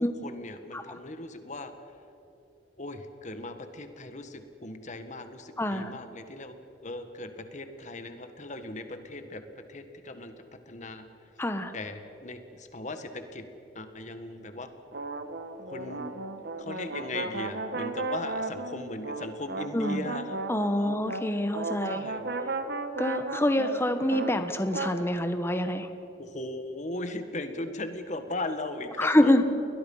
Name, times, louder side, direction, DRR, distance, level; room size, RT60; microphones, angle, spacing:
voice 1, 0.0-1.7 2.8-6.6 6.8-10.3 10.7-11.0 11.7-13.4 13.8-14.7 15.7-16.3 16.6-20.4 20.8-21.0 21.9-22.3 26.2-29.4, left 2 dB, 40° left, 8 dB, 1.8 m, -38 dB
voice 2, 5.6-5.9 11.4-11.7 19.7-20.1 20.5-22.0 23.0-25.9 29.0-29.4, left 1 dB, 15° left, 8 dB, 1.2 m, -26 dB
sound 1, 14.9-25.0, right 3 dB, 65° right, 1.5 m, -35 dB
30.0 x 21.5 x 5.7 m, 2.9 s
head